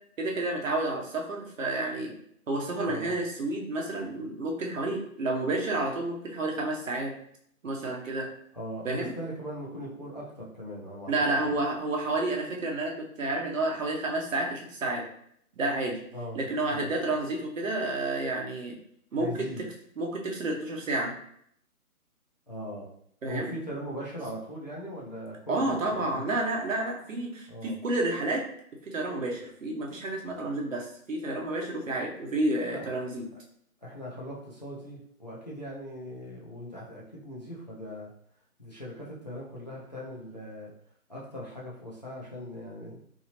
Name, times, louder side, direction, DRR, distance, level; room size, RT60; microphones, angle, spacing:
voice 1, 0.2-2.1 2.5-7.1 7.6-8.3 8.8-9.1 11.1-15.0 15.6-16.0 16.3-18.8 19.1-19.7 20.0-21.1 23.2-23.5 25.5-28.4 28.8-33.2, right 2 dB, 60° right, 0 dB, 0.9 m, -30 dB
voice 2, 2.8-3.2 8.5-11.7 16.1-16.4 16.7-16.9 19.2-19.6 22.5-22.9 23.3-26.3 27.5-27.8 32.7-32.9 33.8-38.1 38.6-40.7 41.1-43.0, equal, 30° left, -6 dB, 0.4 m, -40 dB
2.8 x 2.7 x 2.9 m, 0.68 s
figure-of-eight pair, 150°, 43 cm